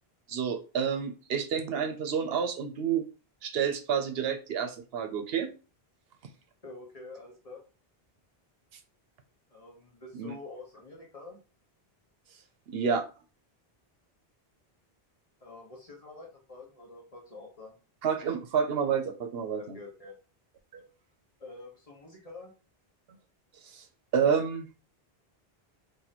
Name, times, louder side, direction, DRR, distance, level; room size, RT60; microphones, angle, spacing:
voice 1, 0.3-3.1 3.4-5.5 10.1-10.4 12.7-13.0 18.0-19.8 20.7-20.9 23.7-23.8 24.1-24.7, right 7 dB, 75° right, 8 dB, 0.8 m, -29 dB
voice 2, 6.6-7.6 9.5-11.4 15.4-17.7 19.6-20.2 21.4-22.5, left 3 dB, 35° left, -1 dB, 1.1 m, -47 dB
2.9 x 2.7 x 4.0 m, 0.34 s
omnidirectional pair, 1.0 m